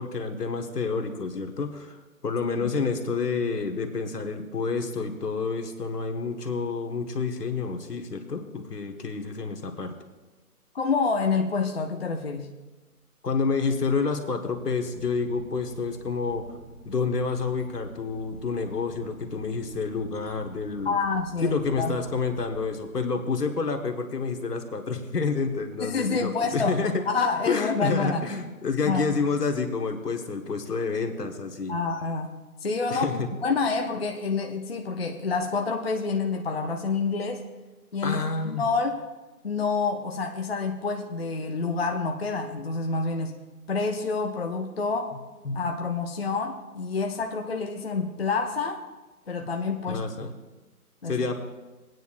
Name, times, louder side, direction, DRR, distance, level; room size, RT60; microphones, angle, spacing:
voice 1, 0.0-2.0 2.2-9.9 13.2-16.5 16.8-20.9 21.4-27.0 27.4-31.7 32.9-33.3 38.0-38.6 45.4-45.7 49.9-50.3 51.0-51.4, left 4 dB, 80° left, 5 dB, 1.4 m, -29 dB
voice 2, 10.7-12.5 20.9-22.0 25.8-26.8 27.1-28.2 28.9-29.2 31.7-37.5 37.9-39.0 39.4-43.4 43.7-45.2 45.5-48.8 49.3-50.0 51.0-51.2, left 4 dB, 40° left, 3 dB, 0.6 m, -28 dB
Boat Water vehicle / Engine, 14.4-23.4, right 1 dB, 15° right, 2.3 m, -47 dB
20.0 x 9.3 x 2.5 m, 1.2 s
hypercardioid pair, 165°, 46 cm